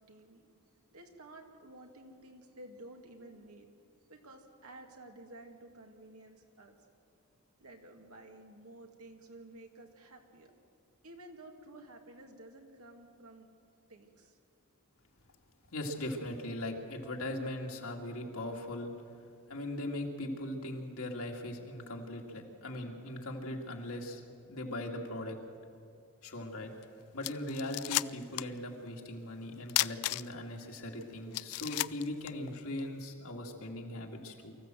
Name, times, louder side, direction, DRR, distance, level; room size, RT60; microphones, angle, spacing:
voice 1, 0.0-3.7 4.1-6.7 7.6-10.5 11.0-13.5 13.9-14.4, right 1 dB, 75° right, 3 dB, 2.4 m, -53 dB
voice 2, 15.7-18.9 19.5-24.2 24.5-25.4 26.2-26.7 27.1-34.6, left 1 dB, 65° left, 1 dB, 2.4 m, -39 dB
sound 1, 26.8-26.9 27.2-28.6 28.9-29.0 29.7-30.6 31.0-31.1 31.3-32.9, left 16 dB, 85° left, 0.4 m, -33 dB
24.5 x 14.5 x 7.7 m, 2.4 s
head